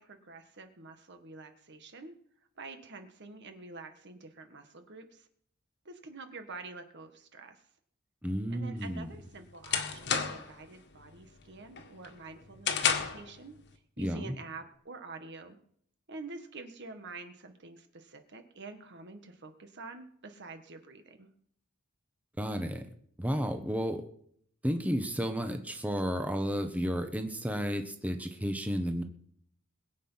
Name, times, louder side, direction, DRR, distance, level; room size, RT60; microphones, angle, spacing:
voice 1, 0.0-2.1 2.6-5.3 5.8-7.6 8.5-13.6 14.0-15.6 16.1-21.3, right 3 dB, 55° right, 7 dB, 1.6 m, -47 dB
voice 2, 8.2-9.1 14.0-14.4 22.4-22.9 23.2-24.0 24.6-29.0, equal, 5° right, 6 dB, 1.1 m, -32 dB
sound 1, 8.8-10.6 11.0-11.4 11.8-13.3, left 6 dB, 55° left, 1.8 m, -31 dB
21.5 x 8.3 x 5.7 m, 0.65 s
head